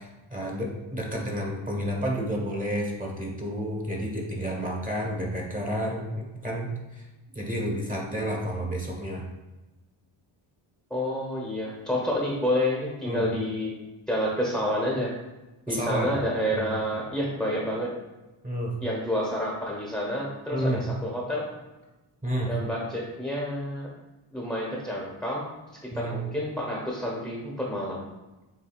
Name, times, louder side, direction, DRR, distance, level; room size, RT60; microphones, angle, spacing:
voice 1, 0.0-7.1 7.3-9.3 13.0-13.3 15.7-16.2 16.5-16.7 18.4-18.7 20.5-20.8 22.2-22.5 25.9-26.2, equal, 15° right, -2 dB, 1.3 m, -30 dB
voice 2, 10.9-13.7 14.1-15.1 15.7-17.9 18.8-21.5 22.5-23.9 24.3-25.5 25.8-28.0, equal, ahead, -3 dB, 1.1 m, -29 dB
7.5 x 2.7 x 2.4 m, 1.1 s
cardioid pair, 75°, 49 cm